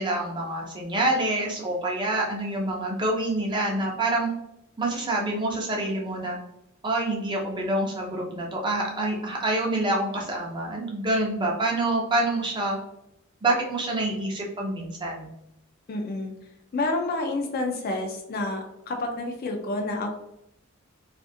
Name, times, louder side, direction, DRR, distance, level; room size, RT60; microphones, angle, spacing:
voice 1, 0.0-4.3 4.8-6.4 6.8-12.8 13.4-15.3, right 2 dB, 20° right, -1 dB, 0.5 m, -27 dB
voice 2, 15.9-16.3 16.7-20.2, left 2 dB, 45° left, 3 dB, 0.4 m, -29 dB
2.5 x 2.4 x 2.6 m, 0.81 s
head